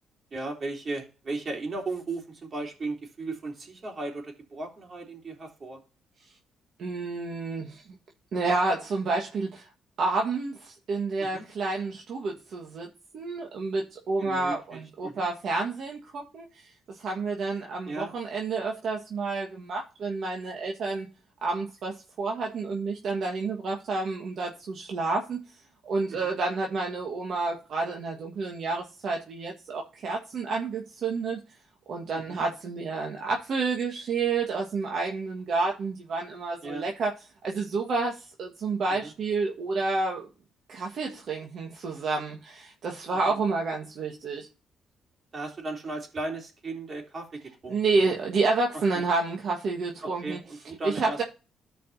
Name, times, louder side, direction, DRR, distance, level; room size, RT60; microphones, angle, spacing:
voice 1, 0.3-5.8 11.2-11.4 14.2-15.3 17.9-18.1 26.1-26.3 32.1-32.4 36.6-36.9 39.0-39.1 45.3-48.1 48.7-49.0 50.0-51.2, right 2 dB, 40° right, 1 dB, 3.4 m, -36 dB
voice 2, 6.8-7.8 8.3-9.7 10.0-12.9 13.1-21.1 21.4-25.6 25.8-31.4 31.9-37.1 37.4-40.3 40.7-44.5 47.7-50.4 50.8-51.2, right 3 dB, 60° right, 1 dB, 1.6 m, -29 dB
14.0 x 5.1 x 2.7 m, 0.32 s
cardioid pair, 90°, 0 cm